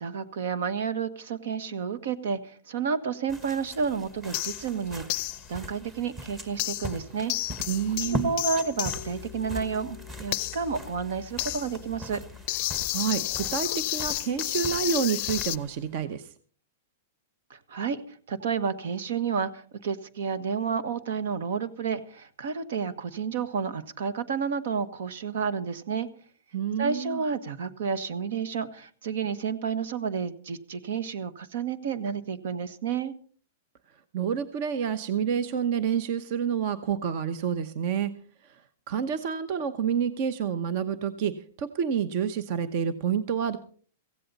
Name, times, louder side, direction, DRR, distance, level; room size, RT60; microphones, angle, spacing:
voice 1, 0.0-7.3 8.0-12.2 17.5-26.1 26.8-33.1, right 6 dB, 70° right, 13 dB, 1.4 m, -31 dB
sound 1, 3.3-16.0, right 2 dB, 15° right, 1.3 m, -41 dB
sound 2, 4.3-4.7 5.1-5.5 6.6-7.0 7.3-15.6, left 20 dB, 40° left, 0.6 m, -32 dB
voice 2, 7.7-8.3 12.9-16.3 26.5-27.2 34.1-38.1 38.4-38.6 38.9-43.6, right 7 dB, 40° right, 13 dB, 0.9 m, -28 dB
16.0 x 16.0 x 4.1 m, 0.44 s
supercardioid pair, 165°, 0 cm